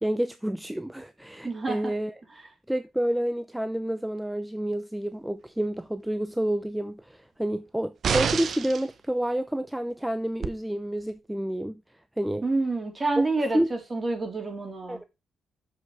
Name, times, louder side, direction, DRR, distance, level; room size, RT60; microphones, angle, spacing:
voice 1, 0.0-2.1 2.7-11.8 12.2-12.4 13.2-13.3 13.5-13.7 14.9-15.0, right 1 dB, 5° right, 0.7 m, -29 dB
voice 2, 1.4-1.9 12.4-15.0, right 3 dB, 30° right, 3.6 m, -28 dB
sound 1, 8.0-8.9 10.4-10.5, right 6 dB, 55° right, 0.9 m, -27 dB
7.3 x 6.0 x 4.7 m
hypercardioid pair, 40°, 0 cm